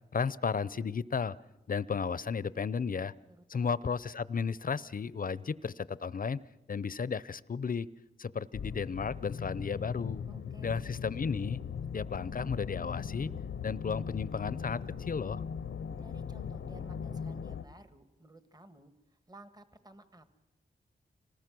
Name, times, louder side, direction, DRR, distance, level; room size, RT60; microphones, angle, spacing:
voice 1, 0.1-1.3 1.7-3.1 3.5-6.4 6.7-7.9 8.2-10.2 10.6-11.6 11.9-13.3 13.6-15.4, left 5 dB, 50° left, 19 dB, 0.6 m, -34 dB
voice 2, 3.3-3.9 10.3-10.9 16.0-20.2, right 1 dB, 20° right, 10 dB, 1.5 m, -56 dB
sound 1, 8.5-17.7, left 6 dB, 90° left, 0.8 m, -39 dB
25.5 x 19.5 x 6.2 m, 1.0 s
cardioid pair, 60°, 19 cm